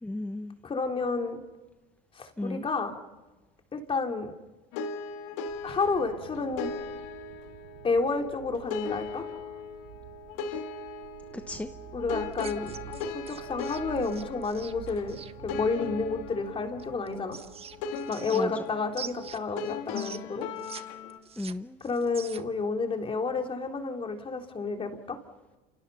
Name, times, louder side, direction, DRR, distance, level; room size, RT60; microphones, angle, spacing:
voice 1, 0.0-0.6 2.4-2.7 10.5-10.6 11.3-11.7 18.3-18.6 21.4-21.8, left 2 dB, 5° left, 8 dB, 1.0 m, -35 dB
voice 2, 0.6-1.4 2.2-3.0 3.7-4.3 5.6-6.7 7.8-9.2 11.9-12.7 13.1-15.2 15.4-17.4 18.1-20.5 21.8-25.2, left 4 dB, 30° left, 4 dB, 3.5 m, -30 dB
sound 1, 4.7-21.2, left 4 dB, 75° left, 2.2 m, -38 dB
sound 2, 5.5-18.1, right 11 dB, 85° right, 5.1 m, -49 dB
sound 3, 12.3-15.3 16.8-18.7 18.9-20.8 21.1-22.6, right 7 dB, 30° right, 1.3 m, -44 dB
29.5 x 28.5 x 5.7 m, 1.1 s
supercardioid pair, 100°, 19 cm